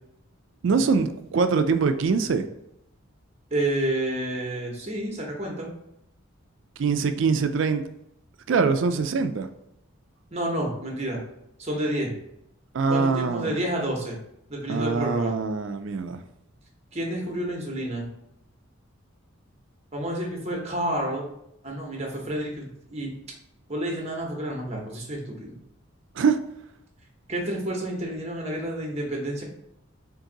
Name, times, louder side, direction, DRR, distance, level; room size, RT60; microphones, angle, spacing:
voice 1, 0.6-2.5 6.8-7.8 8.5-9.5 12.7-13.5 14.7-16.2 26.2-26.4, right 5 dB, 60° right, 9 dB, 0.3 m, -23 dB
voice 2, 3.5-5.7 10.3-11.2 11.6-12.1 12.9-14.2 14.5-15.4 16.9-18.1 19.9-21.3 21.6-23.1 23.7-25.5 27.3-29.4, right 1 dB, 30° right, 0 dB, 0.8 m, -29 dB
3.9 x 2.6 x 3.8 m, 0.78 s
head